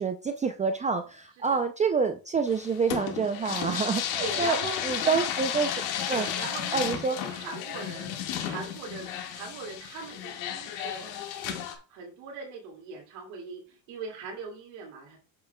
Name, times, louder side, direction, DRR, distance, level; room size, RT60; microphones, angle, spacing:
voice 1, 0.0-4.6 4.8-5.8 6.1-6.3 6.7-7.2, right 5 dB, 20° right, 7 dB, 0.4 m, -27 dB
sound 1, 2.5-11.7, left 9 dB, 85° left, 1.9 m, -33 dB
voice 2, 4.2-4.8 5.0-5.3 6.1-15.2, right 4 dB, 80° right, -1 dB, 2.5 m, -40 dB
7.8 x 6.9 x 2.3 m, 0.33 s
cardioid pair, 120°, 41 cm